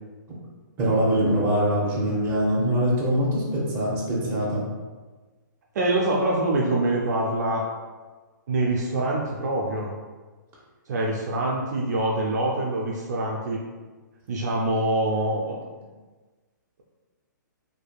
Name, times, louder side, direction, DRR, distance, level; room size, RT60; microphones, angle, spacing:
voice 1, 0.8-4.6, equal, 20° right, -6 dB, 0.8 m, -23 dB
voice 2, 5.7-7.6 8.5-9.9 10.9-13.6 14.3-15.6, right 2 dB, 55° right, -2 dB, 0.4 m, -25 dB
2.6 x 2.6 x 2.2 m, 1.3 s
hypercardioid pair, 145°, 11 cm